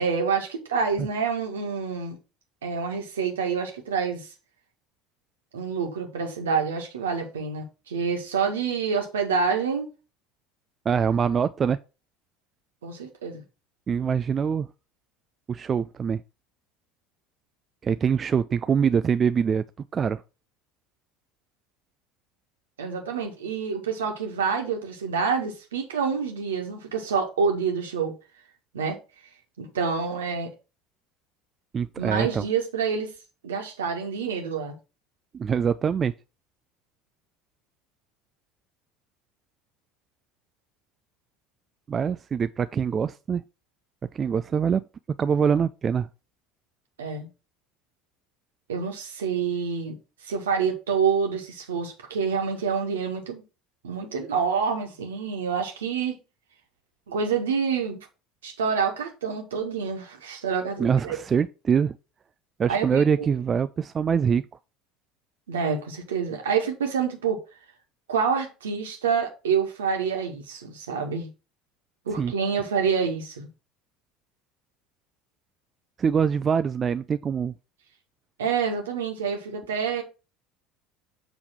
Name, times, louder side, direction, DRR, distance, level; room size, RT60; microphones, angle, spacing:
voice 1, 0.0-2.2 2.6-4.3 5.5-9.9 12.8-13.4 22.8-28.2 28.7-29.0 29.6-30.5 32.0-33.1 33.4-34.7 47.0-47.3 48.7-50.0 50.2-53.4 53.8-56.2 57.1-58.0 58.4-61.2 62.7-63.3 65.5-67.4 68.1-71.3 72.0-73.5 78.4-80.0, right 6 dB, 70° right, 1.5 m, -27 dB
voice 2, 10.9-11.8 13.9-14.7 15.5-16.2 17.8-19.6 19.9-20.2 31.7-32.5 35.3-36.1 41.9-43.4 44.1-44.9 45.2-46.1 60.8-62.0 62.6-64.5 72.2-72.3 76.0-77.5, right 7 dB, 30° right, 0.3 m, -24 dB
7.1 x 3.6 x 5.9 m
figure-of-eight pair, 65°, 0 cm